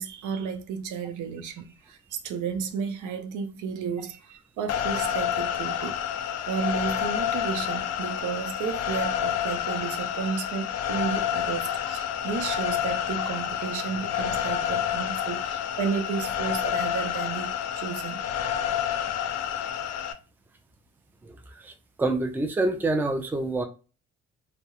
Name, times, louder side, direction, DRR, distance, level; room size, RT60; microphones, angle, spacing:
voice 1, 0.0-6.0 6.5-18.2, right 6 dB, 80° right, 0.6 m, -32 dB
sound 1, 4.7-20.1, left 10 dB, 60° left, 0.4 m, -29 dB
voice 2, 21.2-21.7 22.0-23.6, right 2 dB, 5° right, 0.4 m, -27 dB
2.2 x 2.0 x 2.9 m
cardioid pair, 90°, 30 cm